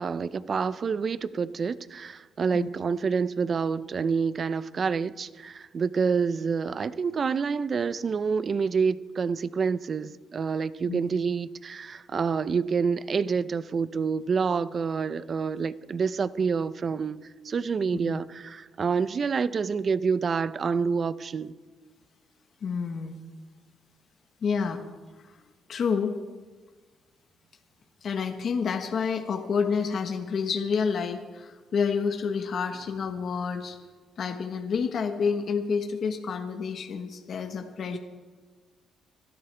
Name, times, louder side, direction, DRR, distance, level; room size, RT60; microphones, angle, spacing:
voice 1, 0.0-17.2 17.4-21.5, right 5 dB, 45° right, 16 dB, 0.6 m, -27 dB
voice 2, 22.6-23.2 24.4-24.8 25.7-26.2 28.0-33.8 34.2-38.0, left 6 dB, 60° left, 4 dB, 1.2 m, -29 dB
25.5 x 12.5 x 3.4 m, 1.4 s
cardioid pair, 90°, 0 cm